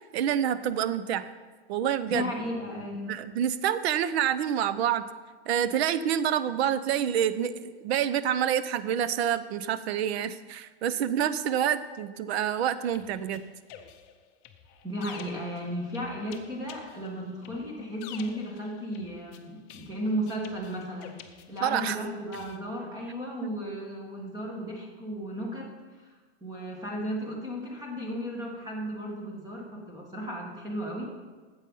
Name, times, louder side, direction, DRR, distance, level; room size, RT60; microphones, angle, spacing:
voice 1, 0.1-1.3 1.7-2.3 3.1-5.1 5.5-13.4 21.6-22.0 23.4-23.5, right 9 dB, 65° right, 14 dB, 0.7 m, -27 dB
voice 2, 2.1-3.2 14.8-21.1 21.5-25.7 26.4-31.1, equal, 10° right, -1 dB, 1.6 m, -34 dB
sound 1, 12.6-21.9 22.3-22.6, left 9 dB, 30° left, 0.6 m, -50 dB
9.6 x 7.9 x 5.5 m, 1.4 s
supercardioid pair, 165°, 34 cm